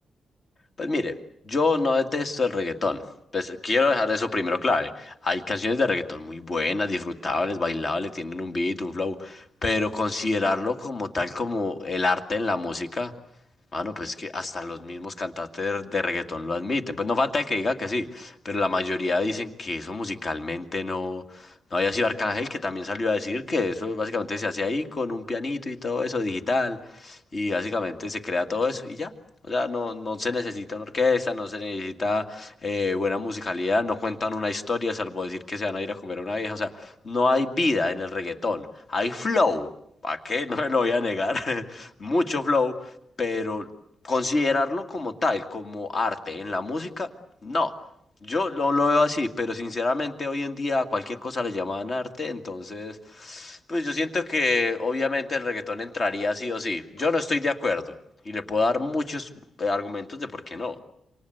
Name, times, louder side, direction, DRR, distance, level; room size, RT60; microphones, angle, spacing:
voice 1, 0.8-1.2 1.4-3.0 3.3-13.1 13.7-29.1 29.5-39.7 40.0-43.7 44.0-47.1 47.4-47.7 48.2-57.9 58.3-59.3 59.6-60.8, left 3 dB, 35° left, 7 dB, 2.1 m, -27 dB
28.0 x 25.5 x 7.9 m, 0.73 s
wide cardioid pair, 150°, 0 cm